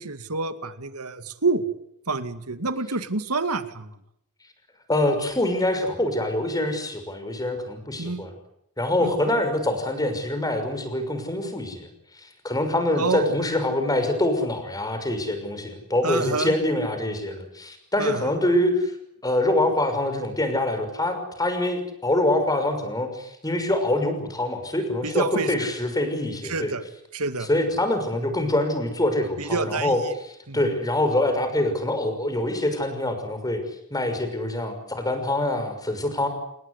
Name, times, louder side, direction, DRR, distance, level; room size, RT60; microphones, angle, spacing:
voice 1, 0.0-1.6 2.1-4.0 8.0-8.3 9.0-9.3 13.0-13.3 16.0-16.5 18.0-18.3 25.0-25.5 26.4-26.8 27.1-27.5 29.4-30.1 30.5-30.7, right 3 dB, 85° right, 11 dB, 2.2 m, -28 dB
voice 2, 4.9-8.3 8.8-11.9 12.2-18.9 19.2-26.7 27.5-30.0 30.5-33.6 33.9-36.3, left 1 dB, 15° left, 8 dB, 6.0 m, -25 dB
28.5 x 21.0 x 8.3 m, 0.76 s
head